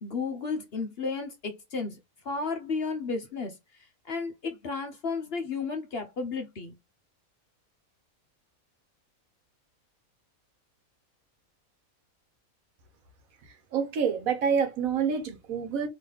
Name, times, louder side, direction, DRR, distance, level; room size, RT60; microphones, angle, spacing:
voice 1, 0.0-2.0 2.2-3.6 4.0-6.7, left 4 dB, 55° left, 0.8 m, -33 dB
voice 2, 13.4-15.9, right 6 dB, 75° right, 1.3 m, -28 dB
3.9 x 3.1 x 3.3 m
omnidirectional pair, 1.5 m